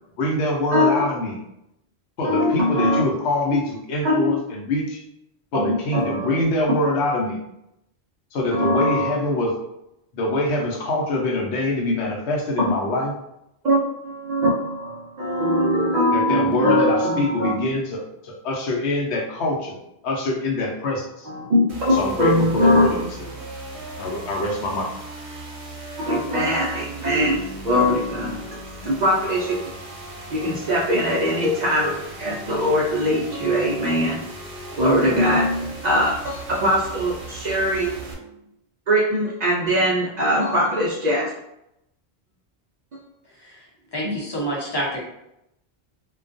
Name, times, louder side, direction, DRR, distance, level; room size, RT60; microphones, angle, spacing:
voice 1, 0.2-1.4 2.2-5.0 5.5-7.4 8.3-9.6 10.1-13.1 16.1-21.3 21.9-23.3 24.0-24.9, left 1 dB, 90° left, 0 dB, 0.9 m, -24 dB
voice 2, 0.7-1.0 2.2-3.0 3.5-3.6 4.0-4.3 5.5-6.4 8.5-9.2 13.6-17.5 21.2-22.9 26.0-29.7 30.3-34.2 34.8-38.1 38.9-41.3 44.0-44.2, equal, 55° right, -4 dB, 0.5 m, -21 dB
sound 1, 21.7-38.1, right 2 dB, 85° right, 0.9 m, -37 dB
voice 3, 43.9-45.0, right 1 dB, 30° left, -4 dB, 0.6 m, -27 dB
2.3 x 2.2 x 2.5 m, 0.83 s
omnidirectional pair, 1.1 m